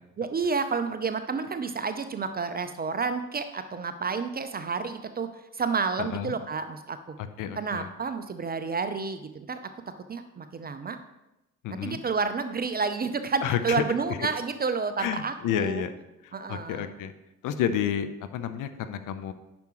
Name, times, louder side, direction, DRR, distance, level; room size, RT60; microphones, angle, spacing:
voice 1, 0.2-7.2 7.5-9.6 10.1-11.0 11.7-15.8 16.3-16.9, right 5 dB, 20° right, 10 dB, 0.5 m, -30 dB
voice 2, 6.0-6.3 7.4-7.9 11.6-12.0 13.4-13.8 14.2-14.3 15.0-15.9 16.2-17.1 17.4-19.3, left 9 dB, 45° left, 10 dB, 0.7 m, -30 dB
10.0 x 6.0 x 3.0 m, 0.94 s
figure-of-eight pair, 50°, 43 cm